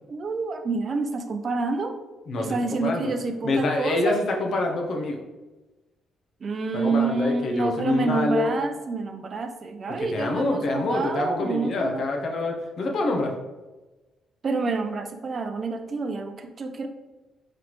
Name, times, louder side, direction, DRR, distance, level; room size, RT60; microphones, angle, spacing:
voice 1, 0.1-1.9 2.4-4.2 6.4-12.0 14.4-16.9, right 3 dB, 45° right, 6 dB, 0.4 m, -28 dB
voice 2, 2.3-3.1 3.4-5.2 6.7-8.5 10.0-13.3, left 2 dB, 60° left, 2 dB, 0.7 m, -26 dB
4.0 x 3.2 x 2.9 m, 1.1 s
cardioid pair, 90°, 0 cm